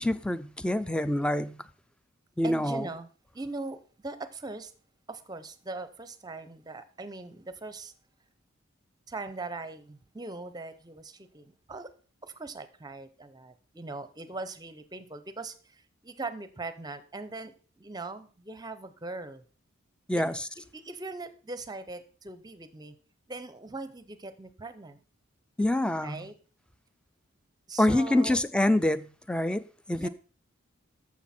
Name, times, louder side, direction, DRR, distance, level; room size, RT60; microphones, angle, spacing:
voice 1, 0.0-1.6 2.4-2.9 20.1-20.3 25.6-26.2 27.8-30.1, left 1 dB, 5° left, 0.4 m, -26 dB
voice 2, 2.4-3.1 3.3-4.7 5.1-7.9 9.1-11.9 12.2-19.4 20.2-22.9 23.3-25.0 26.0-26.3 27.7-28.4 30.0-30.1, right 3 dB, 20° right, 0.8 m, -40 dB
13.5 x 6.1 x 4.3 m
head